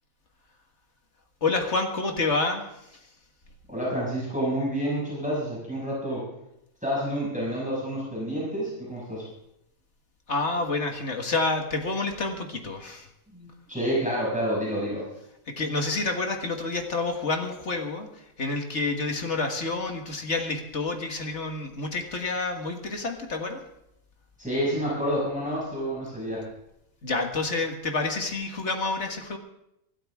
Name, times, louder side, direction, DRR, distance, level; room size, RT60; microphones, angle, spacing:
voice 1, 1.4-3.0 10.3-13.1 15.5-23.6 27.0-29.4, left 3 dB, 55° left, 4 dB, 1.9 m, -28 dB
voice 2, 3.7-6.2 6.8-9.3 13.3-15.0 24.4-26.5, equal, 5° right, -6 dB, 6.0 m, -29 dB
25.5 x 12.0 x 3.6 m, 0.82 s
omnidirectional pair, 1.5 m